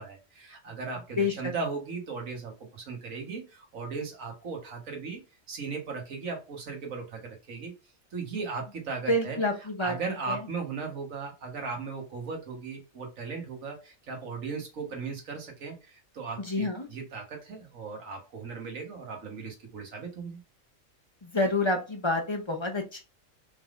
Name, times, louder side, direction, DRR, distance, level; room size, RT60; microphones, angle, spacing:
voice 1, 0.0-5.2 5.5-7.7 8.1-9.4 9.8-20.4, right 4 dB, 85° right, 2 dB, 1.7 m, -37 dB
voice 2, 1.2-1.5 9.1-9.9 10.3-10.4 16.4-16.9 21.3-23.0, left 2 dB, 30° left, 3 dB, 0.6 m, -28 dB
4.5 x 3.5 x 2.5 m, 0.29 s
omnidirectional pair, 1.3 m